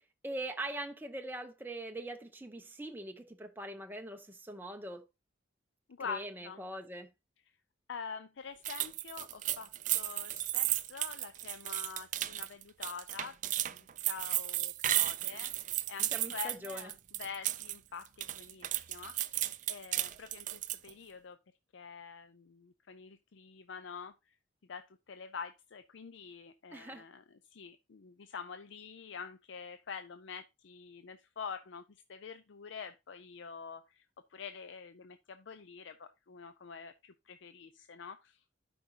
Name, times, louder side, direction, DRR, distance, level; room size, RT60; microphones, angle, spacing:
voice 1, 0.2-5.0 6.0-7.1 16.1-16.9 26.7-27.1, right 1 dB, 10° right, 0.7 m, -42 dB
voice 2, 6.0-6.6 7.9-16.9 17.2-19.3 19.7-21.4 21.7-24.1 24.7-27.2 27.5-31.8 32.1-34.0 34.3-38.4, left 6 dB, 70° left, 0.5 m, -46 dB
sound 1, 8.6-17.8 18.0-20.9, right 14 dB, 40° right, 0.3 m, -34 dB
12.0 x 5.1 x 2.8 m
head